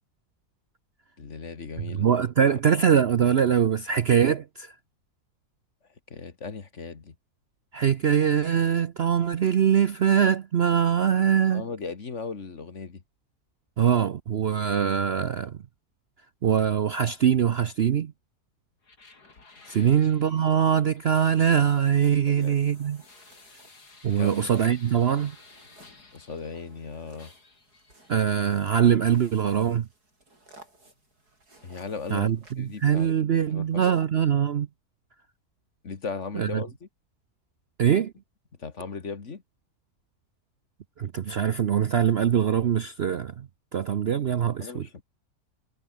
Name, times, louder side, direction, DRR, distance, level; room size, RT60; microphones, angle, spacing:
voice 1, 1.2-2.1 2.5-2.6 6.1-7.2 11.5-13.0 19.8-20.0 22.3-22.6 24.2-24.7 26.1-27.3 31.6-33.9 35.8-36.9 38.6-39.4 44.6-45.0, left 5 dB, 50° left, 2.1 m, -37 dB
voice 2, 2.0-4.7 7.7-11.6 13.8-15.6 16.4-18.1 19.7-23.0 24.0-25.3 28.1-29.9 32.1-34.7 36.3-36.6 37.8-38.1 41.0-43.3 43.7-44.9, right 8 dB, 55° right, 0.8 m, -23 dB
sound 1, 18.8-26.8 27.2-28.4, left 3 dB, 85° left, 4.5 m, -54 dB
sound 2, 21.4-33.1, right 2 dB, 75° right, 8.7 m, -56 dB
omnidirectional pair, 1.7 m